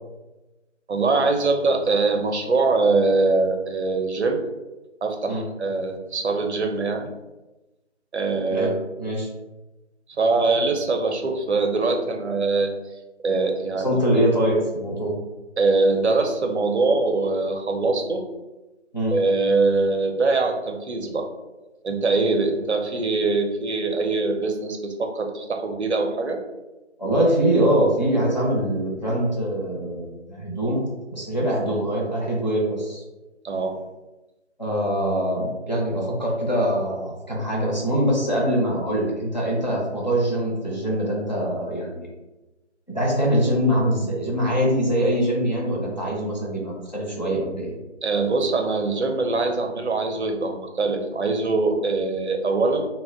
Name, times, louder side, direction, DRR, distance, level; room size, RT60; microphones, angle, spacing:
voice 1, 0.9-4.4 5.0-7.1 8.1-8.7 10.2-12.7 13.2-14.0 15.6-18.2 19.1-21.3 21.8-26.4 33.4-33.8 48.0-52.9, right 3 dB, 65° right, 4 dB, 0.5 m, -23 dB
voice 2, 13.7-15.1 18.9-19.1 27.0-30.9 31.1-33.0 34.6-42.1 42.9-47.7, right 1 dB, 40° left, -5 dB, 0.6 m, -23 dB
2.1 x 2.1 x 3.5 m, 1.1 s
figure-of-eight pair, 175°, 36 cm